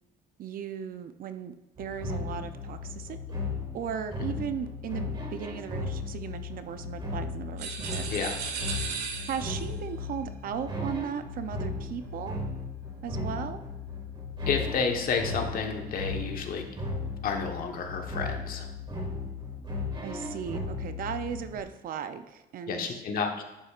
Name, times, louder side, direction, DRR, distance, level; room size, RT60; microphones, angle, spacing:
voice 1, 0.4-3.2 3.7-8.0 9.3-12.4 13.0-13.6 20.0-23.0, right 8 dB, 55° right, 9 dB, 0.6 m, -37 dB
sound 1, 1.8-21.6, left 3 dB, 30° right, 2.1 m, -36 dB
sound 2, 7.6-9.7, right 5 dB, 85° right, 1.4 m, -35 dB
voice 2, 14.5-16.6 17.2-18.7 22.7-23.4, left 5 dB, 60° left, 3 dB, 1.3 m, -30 dB
10.5 x 8.2 x 2.5 m, 0.98 s
cardioid pair, 110°, 17 cm